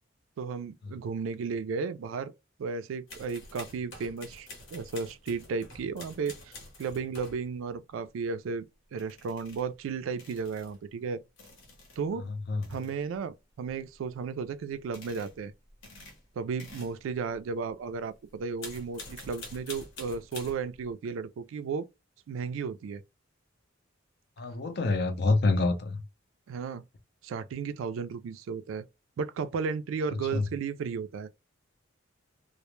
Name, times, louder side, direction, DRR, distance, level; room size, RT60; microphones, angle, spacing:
voice 1, 0.4-2.3 2.6-11.2 12.0-12.3 12.7-15.5 16.4-21.9 22.3-23.0 26.5-26.8 27.2-28.9 29.2-31.3, right 5 dB, 75° right, 0.3 m, -34 dB
sound 1, 3.1-7.5 9.0-9.8 10.2-10.8 11.4-12.1 12.5-13.0 13.7-14.1 14.8-15.4 15.7-18.0 18.4-20.9, left 2 dB, 75° left, 0.8 m, -47 dB
voice 2, 12.3-12.6 24.4-26.0 30.3-30.5, left 3 dB, 55° left, 0.4 m, -27 dB
2.1 x 2.0 x 3.0 m
head